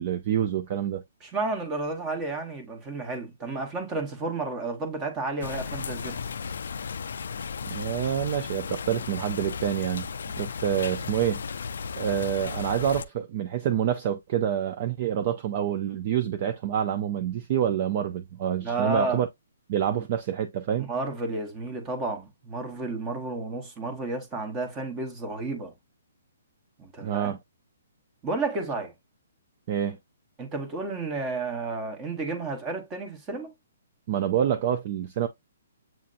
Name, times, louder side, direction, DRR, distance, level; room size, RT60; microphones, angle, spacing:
voice 1, 0.0-1.0 7.7-10.1 10.4-11.4 12.0-19.3 19.7-20.9 27.0-27.4 29.7-30.0 34.1-35.3, right 9 dB, 35° right, 0.5 m, -27 dB
voice 2, 1.2-6.2 18.6-19.2 19.9-20.0 20.8-25.7 26.8-27.3 28.2-28.9 30.4-33.5, right 3 dB, 15° right, 1.0 m, -31 dB
sound 1, 5.4-13.1, left 6 dB, 70° left, 0.3 m, -35 dB
7.6 x 2.7 x 2.5 m
hypercardioid pair, 165°, 0 cm